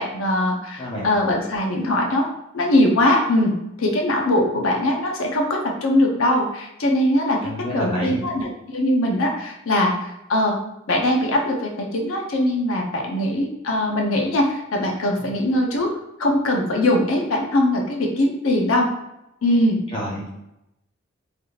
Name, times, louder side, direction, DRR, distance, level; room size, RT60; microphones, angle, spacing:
voice 1, 0.0-2.3 2.5-3.5 3.8-10.6 10.9-15.9 16.2-18.9 19.4-19.8, left 1 dB, 90° left, 0 dB, 0.7 m, -21 dB
voice 2, 7.4-8.2 15.2-15.3 19.9-20.3, equal, 30° left, -4 dB, 0.9 m, -28 dB
3.4 x 2.8 x 2.3 m, 0.86 s
head